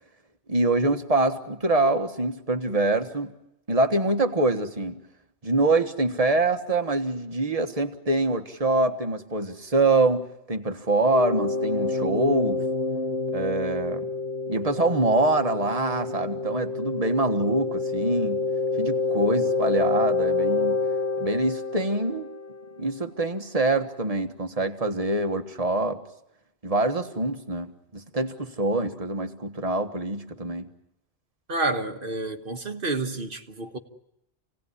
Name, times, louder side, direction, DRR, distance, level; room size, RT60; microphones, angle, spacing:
voice 1, 0.5-3.3 3.7-5.0 5.4-12.6 13.3-14.1 14.5-18.4 18.8-20.8 21.2-22.3 22.8-26.0 26.6-30.7, right 2 dB, 30° right, 1.6 m, -25 dB
sound 1, 11.1-22.7, left 4 dB, 70° left, 2.5 m, -28 dB
voice 2, 31.5-33.8, right 2 dB, 50° right, 1.6 m, -29 dB
28.5 x 18.0 x 9.8 m
omnidirectional pair, 1.2 m